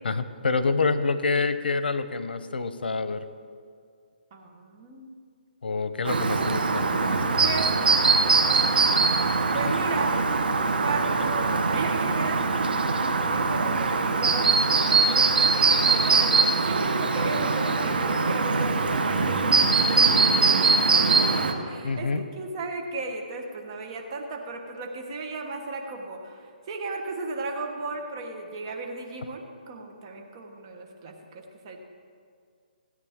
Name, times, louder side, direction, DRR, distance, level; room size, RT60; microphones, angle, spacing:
voice 1, 0.0-3.3 5.6-7.5 9.5-9.7 21.8-22.2, left 4 dB, 85° left, 12 dB, 0.8 m, -27 dB
voice 2, 4.3-5.1 7.4-7.7 9.5-10.3 10.8-22.1 22.3-29.4 29.7-31.8, right 3 dB, 30° right, 2 dB, 1.2 m, -35 dB
Chirp tweet, 6.1-21.5, right 4 dB, 80° right, 1.2 m, -22 dB
16.5 x 9.4 x 3.6 m, 2.2 s
hypercardioid pair, 170°, 5 cm